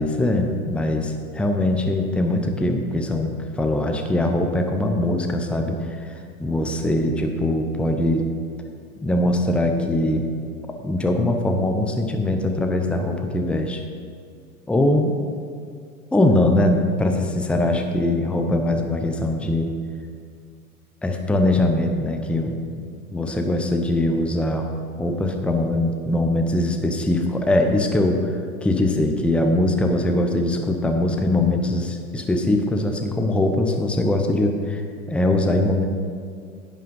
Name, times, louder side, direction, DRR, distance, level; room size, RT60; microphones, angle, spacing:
voice 1, 0.0-5.8 6.4-8.2 9.0-10.2 10.8-13.8 14.7-15.2 16.1-19.7 21.0-22.8 23.1-24.7 25.0-28.3 28.6-34.8 35.1-35.9, left 1 dB, 5° left, 4 dB, 0.7 m, -21 dB
10.5 x 7.5 x 5.4 m, 2.2 s
hypercardioid pair, 105°, 44 cm